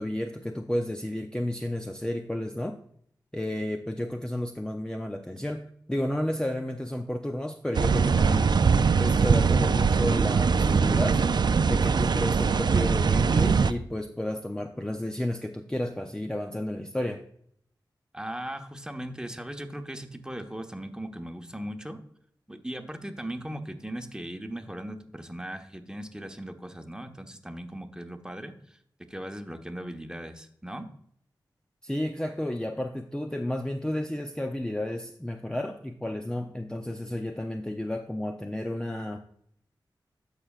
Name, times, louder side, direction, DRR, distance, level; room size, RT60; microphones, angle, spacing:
voice 1, 0.0-2.8 3.3-8.6 9.0-11.3 11.7-17.3 31.8-39.2, left 1 dB, 10° left, 0.6 m, -32 dB
sound 1, 7.7-13.7, right 5 dB, 65° right, 0.4 m, -22 dB
voice 2, 18.1-22.0 22.5-28.8 29.1-30.9, right 1 dB, 10° right, 1.1 m, -38 dB
13.5 x 4.9 x 2.4 m
cardioid pair, 45°, 8 cm